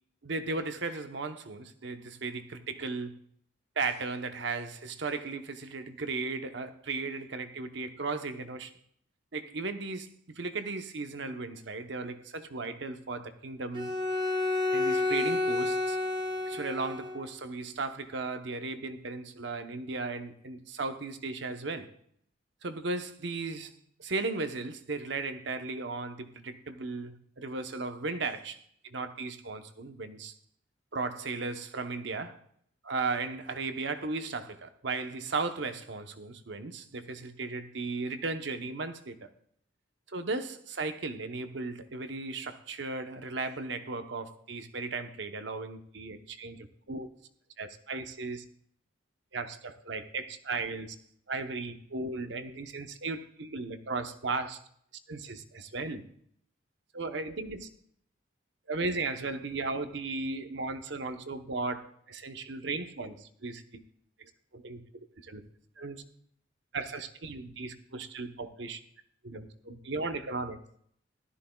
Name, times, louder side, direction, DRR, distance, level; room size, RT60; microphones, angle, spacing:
voice 1, 0.2-3.2 3.8-8.7 9.3-13.9 14.7-16.0 16.5-21.9 22.6-30.3 30.9-32.4 32.8-39.3 40.1-47.1 47.6-48.4 49.3-51.0 51.3-54.6 55.1-56.0 56.9-57.7 58.7-63.8 64.2-64.8 65.2-65.4 65.8-66.0 66.7-68.8 69.2-70.6, right 3 dB, 65° right, 9 dB, 0.8 m, -36 dB
Bowed string instrument, 13.7-17.2, left 2 dB, 25° right, 0.9 m, -30 dB
15.5 x 13.0 x 2.3 m, 0.66 s
head